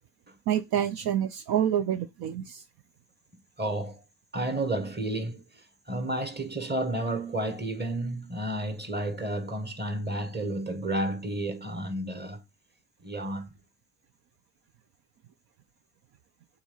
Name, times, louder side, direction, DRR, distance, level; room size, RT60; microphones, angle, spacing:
voice 1, 0.5-2.6, right 10 dB, 70° right, 0.7 m, -27 dB
voice 2, 3.6-4.0 4.3-12.4 13.0-13.5, right 1 dB, 25° right, 2.0 m, -31 dB
7.0 x 3.9 x 5.6 m
supercardioid pair, 65°, 38 cm